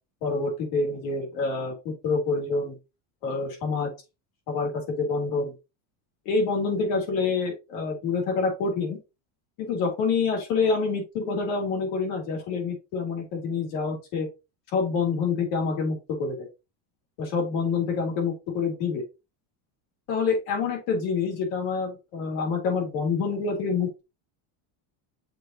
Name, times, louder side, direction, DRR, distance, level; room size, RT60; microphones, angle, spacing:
voice 1, 0.2-2.8 3.2-3.9 4.5-5.5 6.3-9.0 9.6-14.3 14.7-16.5 17.2-19.0 20.1-24.0, left 4 dB, 90° left, 1 dB, 3.5 m, -27 dB
6.6 x 5.5 x 2.8 m, 0.26 s
cardioid pair, 175°, 49 cm